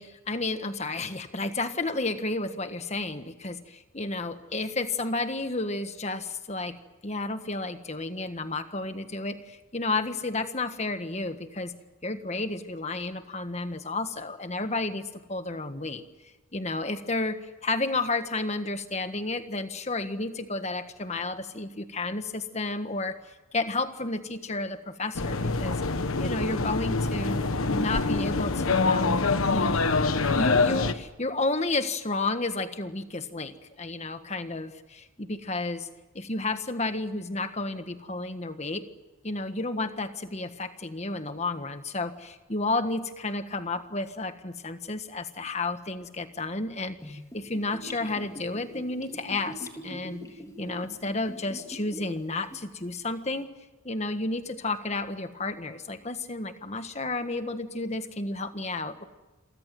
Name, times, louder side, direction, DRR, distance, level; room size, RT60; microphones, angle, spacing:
voice 1, 0.0-6.8 7.0-11.7 12.0-15.0 15.3-16.0 16.5-23.2 23.5-25.8 26.2-29.2 29.5-29.8 30.4-35.9 36.1-38.9 39.2-50.2 50.6-53.5 53.8-59.0, left 2 dB, 30° left, 9 dB, 1.5 m, -31 dB
sound 1, 25.2-30.9, left 3 dB, 85° left, 1.3 m, -25 dB
Gurgling / Bathtub (filling or washing), 47.0-52.2 52.5-52.6, equal, 15° left, 3.5 m, -42 dB
29.0 x 24.0 x 7.7 m, 1.1 s
head